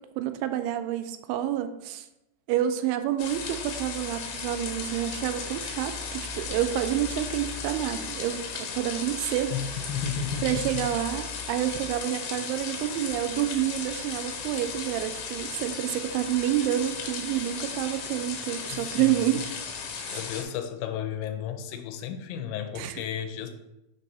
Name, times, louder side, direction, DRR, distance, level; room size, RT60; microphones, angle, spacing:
voice 1, 0.2-2.1 2.5-9.8 10.4-19.5 20.0-20.2 22.8-23.0, right 12 dB, 90° right, 9 dB, 2.9 m, -29 dB
sound 1, 3.2-20.4, left 5 dB, 70° left, 2.7 m, -36 dB
voice 2, 9.9-10.7 18.7-19.3 20.1-23.5, left 8 dB, 85° left, 6 dB, 2.9 m, -33 dB
6.6 x 2.7 x 5.4 m, 0.91 s
omnidirectional pair, 5.2 m